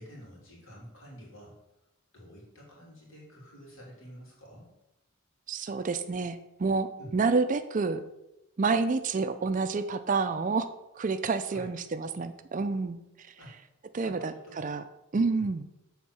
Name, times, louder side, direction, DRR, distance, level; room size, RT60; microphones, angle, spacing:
voice 1, 0.0-1.6 2.1-4.7 7.0-7.1 11.3-11.7 13.4-13.6 13.9-14.6 15.4-15.5, equal, 70° left, -3 dB, 2.8 m, -49 dB
voice 2, 5.5-8.0 8.6-10.7 11.0-13.0 13.9-14.8 15.1-15.7, right 4 dB, 35° right, 10 dB, 0.4 m, -28 dB
7.2 x 3.6 x 6.1 m, 0.90 s
head